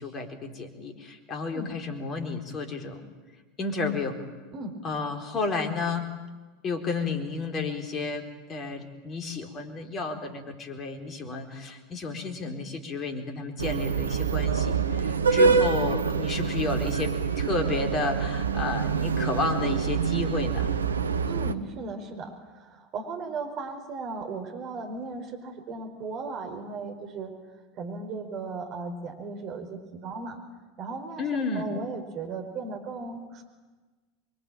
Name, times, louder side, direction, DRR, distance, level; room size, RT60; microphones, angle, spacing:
voice 1, 0.0-3.0 3.6-4.2 4.8-6.1 6.6-20.7 31.2-31.7, left 3 dB, 30° left, 5 dB, 4.2 m, -32 dB
sound 1, 13.6-21.5, right 5 dB, 75° right, 1.0 m, -26 dB
voice 2, 21.2-27.3 27.7-30.4 30.8-33.4, right 4 dB, 40° right, 4 dB, 4.7 m, -36 dB
27.5 x 23.0 x 9.1 m, 1.3 s
figure-of-eight pair, 80°, 0 cm